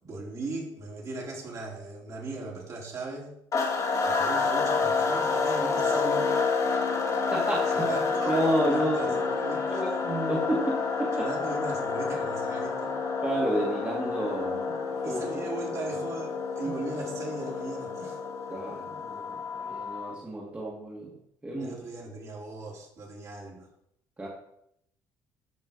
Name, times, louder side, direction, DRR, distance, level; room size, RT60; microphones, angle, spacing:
voice 1, 0.0-3.3 4.0-6.3 7.7-8.4 8.7-9.9 11.1-13.0 15.0-18.2 21.6-23.7, right 3 dB, 45° right, -2 dB, 4.3 m, -38 dB
sound 1, 3.5-20.2, left 4 dB, 45° left, 2.5 m, -29 dB
voice 2, 7.3-7.8 8.3-9.2 9.7-11.3 13.2-15.2 18.5-21.1 21.4-21.8 24.2-24.3, right 1 dB, 20° right, -4 dB, 2.6 m, -30 dB
14.0 x 5.2 x 5.5 m, 0.74 s
cardioid pair, 95°, 8 cm